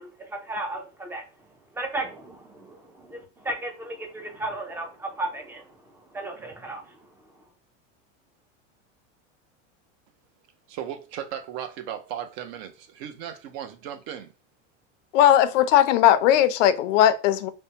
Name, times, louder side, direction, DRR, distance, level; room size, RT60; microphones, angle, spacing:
voice 1, 0.0-7.4, right 2 dB, 5° right, 0.4 m, -35 dB
voice 2, 10.7-14.3, right 9 dB, 60° right, 0.6 m, -36 dB
voice 3, 15.1-17.5, left 11 dB, 80° left, 0.5 m, -18 dB
3.4 x 2.1 x 2.7 m
supercardioid pair, 135°, 37 cm